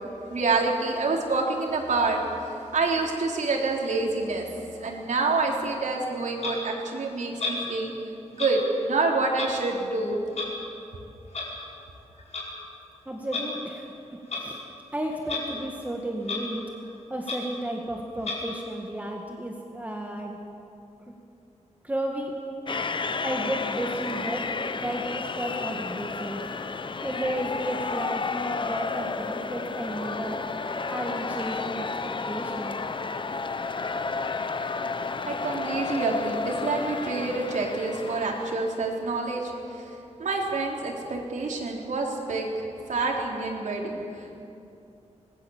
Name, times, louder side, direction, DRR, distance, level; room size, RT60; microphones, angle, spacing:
voice 1, 0.2-4.5 4.8-7.9 8.3-10.1 35.3-42.5 42.9-44.3, right 3 dB, 90° right, 0 dB, 3.9 m, -27 dB
Clock, 6.4-6.5 7.4-7.6 8.3-8.5 9.3-9.5 10.3-10.5 11.3-11.5 12.2-12.4 13.2-13.5 14.3-14.5 15.2-15.4 15.8-15.9 16.2-16.4 16.8-16.9 17.2-17.4 18.2-18.4, left 4 dB, 60° left, 5.1 m, -32 dB
voice 2, 13.1-13.9 14.4-14.6 14.9-16.6 17.1-20.4 21.8-22.3 23.2-30.4 30.9-31.9 32.3-32.8, right 1 dB, 10° right, 0 dB, 2.0 m, -33 dB
sound 1, 22.7-38.9, left 4 dB, 40° left, 0.9 m, -32 dB
25.5 x 21.0 x 7.4 m, 2.7 s
wide cardioid pair, 140°, 12 cm